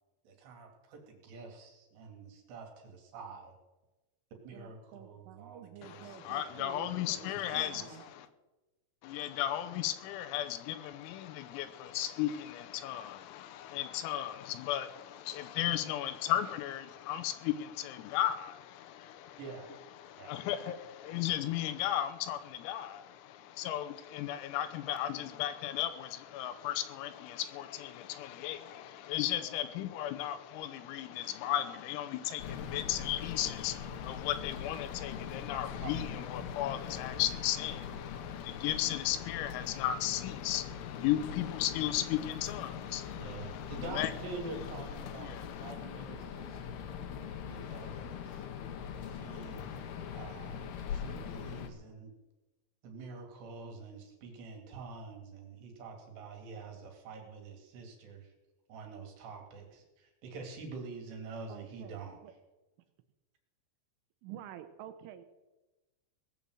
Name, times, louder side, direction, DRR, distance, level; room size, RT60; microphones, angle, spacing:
voice 1, 0.2-3.5 4.4-6.6 7.3-8.0 19.4-19.7 20.2-20.3 20.6-20.7 35.8-35.9 43.1-46.9 47.4-48.5 49.0-52.1 52.8-58.3 58.7-62.2, right 4 dB, 60° right, 2 dB, 4.0 m, -47 dB
voice 2, 4.5-8.1 61.5-62.3 64.2-65.2, right 11 dB, 80° right, 9 dB, 3.3 m, -49 dB
voice 3, 5.8-8.3 9.0-44.1 45.0-45.7, left 12 dB, 90° left, 10 dB, 3.7 m, -35 dB
sound 1, 32.4-51.7, left 7 dB, 70° left, 2.5 m, -42 dB
19.0 x 7.0 x 7.7 m, 1.1 s
omnidirectional pair, 5.9 m